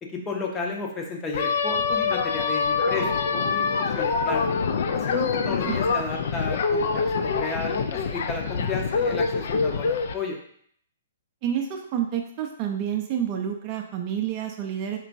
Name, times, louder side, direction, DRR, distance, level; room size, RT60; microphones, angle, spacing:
voice 1, 0.0-4.5 4.9-10.4, left 3 dB, 15° left, 0 dB, 0.7 m, -33 dB
sound 1, 1.3-10.1, left 5 dB, 55° left, 0.3 m, -25 dB
voice 2, 5.1-6.1 11.4-15.0, right 9 dB, 35° right, 2 dB, 0.4 m, -29 dB
4.5 x 2.9 x 2.6 m, 0.64 s
figure-of-eight pair, 120°, 0 cm